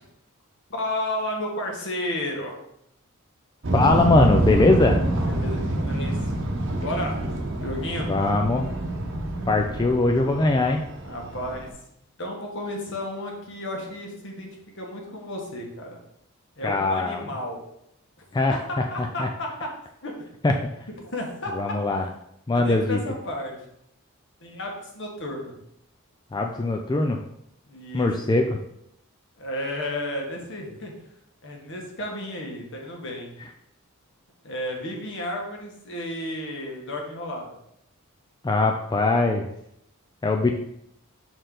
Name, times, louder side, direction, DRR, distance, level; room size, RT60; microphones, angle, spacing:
voice 1, 0.7-2.6 5.3-6.3 6.8-7.2 7.6-8.1 11.0-11.7 12.2-16.0 16.6-17.6 18.5-19.7 20.0-20.2 21.0-21.8 22.5-23.6 24.4-25.6 27.7-28.1 29.4-30.9 31.4-33.3 34.4-37.5, left 1 dB, 60° left, 0 dB, 1.5 m, -32 dB
sound 1, 3.6-11.7, right 1 dB, 60° right, 0.9 m, -26 dB
voice 2, 3.7-5.0 8.0-8.7 9.5-10.8 16.6-17.2 18.3-19.3 20.4-20.5 21.5-22.1 22.5-23.0 26.3-27.2 27.9-28.6 38.4-39.5 40.2-40.5, left 2 dB, 20° left, 3 dB, 0.4 m, -21 dB
6.3 x 4.4 x 3.9 m, 0.77 s
head